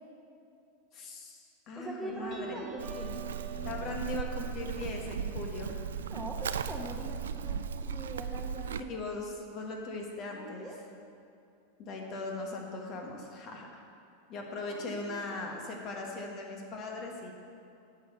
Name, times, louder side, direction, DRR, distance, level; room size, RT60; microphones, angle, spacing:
voice 1, 0.9-2.6 3.6-5.9 8.9-10.7 11.8-13.8 14.3-17.5, left 2 dB, 45° left, 1 dB, 1.5 m, -39 dB
voice 2, 1.7-3.3 6.1-8.7 10.3-10.8 14.7-15.6, right 1 dB, 5° right, -1 dB, 1.2 m, -42 dB
sound 1, 2.1-9.2, right 3 dB, 35° right, 1.1 m, -47 dB
Livestock farm animals working animals, 2.8-8.8, right 7 dB, 85° right, 0.3 m, -37 dB
8.6 x 5.4 x 6.8 m, 2.6 s
hypercardioid pair, 110°, 0 cm